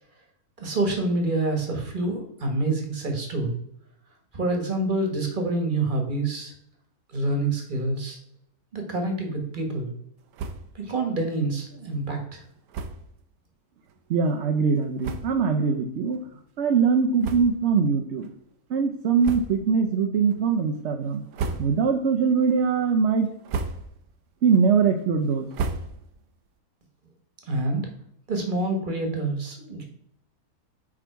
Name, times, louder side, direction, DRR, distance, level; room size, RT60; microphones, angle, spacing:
voice 1, 0.6-3.5 4.3-6.5 7.1-8.2 8.7-9.9 10.7-12.4 27.5-27.9 28.3-29.9, right 2 dB, 35° right, 3 dB, 1.5 m, -27 dB
sound 1, 10.3-10.8 11.2-11.3 11.5-11.7 12.7-13.1 13.9-14.0 14.7-14.8 15.0-15.5 16.1-16.2 17.2-17.8 18.2-18.4 19.2-19.8 20.2-20.7 21.1-22.0 22.4-22.8 23.3-24.1 24.5-26.3, right 4 dB, 75° right, 1.2 m, -34 dB
voice 2, 14.1-16.2 16.6-18.3 18.7-23.3 24.4-25.5, right 5 dB, 60° right, 5 dB, 0.8 m, -22 dB
8.6 x 3.7 x 4.6 m, 0.74 s
omnidirectional pair, 1.6 m